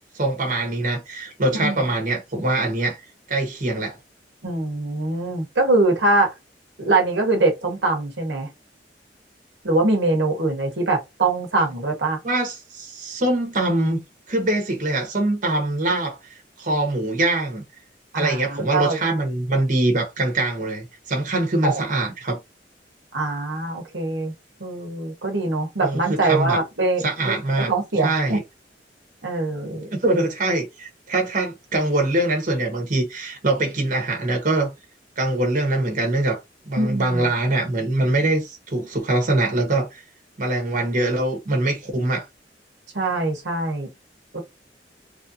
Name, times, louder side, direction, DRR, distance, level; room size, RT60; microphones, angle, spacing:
voice 1, 0.1-3.0 3.3-4.0 12.2-14.0 14.3-17.6 18.1-22.4 25.8-26.6 27.0-27.7 28.0-28.4 29.9-34.7 35.2-36.4 36.7-40.0 40.4-42.2, right 2 dB, 45° right, 1.1 m, -23 dB
voice 2, 4.4-6.3 6.8-8.5 9.6-12.2 18.1-19.0 21.6-21.8 23.1-24.3 24.6-27.4 27.7-28.4 29.2-29.9 36.8-37.2 42.9-43.9 44.3-44.4, right 2 dB, 75° right, 1.1 m, -23 dB
3.2 x 2.6 x 2.7 m
head